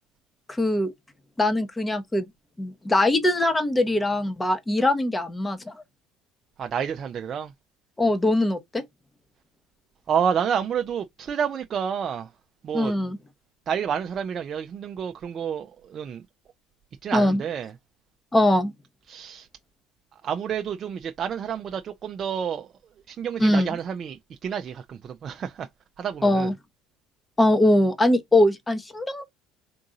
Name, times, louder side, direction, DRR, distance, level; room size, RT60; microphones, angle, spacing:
voice 1, 0.5-0.9 1.4-2.3 2.6-5.8 8.0-8.8 12.7-13.2 17.1-17.4 18.3-18.7 23.4-23.8 26.2-26.5 27.4-29.2, left 1 dB, 15° left, 0.9 m, -22 dB
voice 2, 6.6-7.5 10.1-12.3 12.6-12.9 13.7-16.2 17.0-17.7 19.1-19.5 20.2-22.7 23.1-25.7 26.0-26.5, right 7 dB, 45° right, 0.4 m, -29 dB
3.7 x 2.6 x 3.9 m
supercardioid pair, 85°, 0 cm